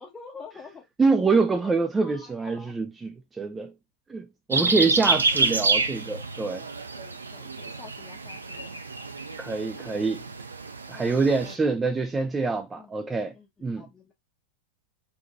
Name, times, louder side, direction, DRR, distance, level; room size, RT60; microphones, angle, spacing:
voice 1, 0.0-0.8 1.2-2.7 4.6-5.5 7.0-8.8 10.9-11.8 12.7-13.0 13.3-14.1, left 5 dB, 15° left, 0.7 m, -48 dB
voice 2, 1.0-2.9 3.4-3.7 4.1-6.6 9.4-10.2 10.9-13.3 13.6-13.8, right 4 dB, 15° right, 0.3 m, -25 dB
sound 1, 4.5-11.5, right 3 dB, 75° right, 0.4 m, -28 dB
2.7 x 2.3 x 3.9 m
figure-of-eight pair, 90°, 0 cm